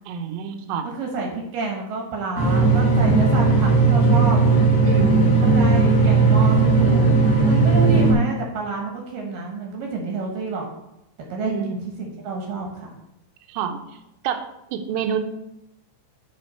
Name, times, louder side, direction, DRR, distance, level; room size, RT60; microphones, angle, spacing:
voice 1, 0.1-0.9 4.9-5.4 11.4-11.7 13.5-13.8 14.2-14.4 14.7-15.2, right 6 dB, 85° right, 7 dB, 3.3 m, -27 dB
voice 2, 0.9-4.4 5.4-7.1 7.4-10.6 11.3-12.9, right 3 dB, 65° right, 0 dB, 2.3 m, -29 dB
sound 1, 2.4-8.1, right 4 dB, 45° left, 3.6 m, -16 dB
12.0 x 4.1 x 4.3 m, 0.87 s
omnidirectional pair, 5.6 m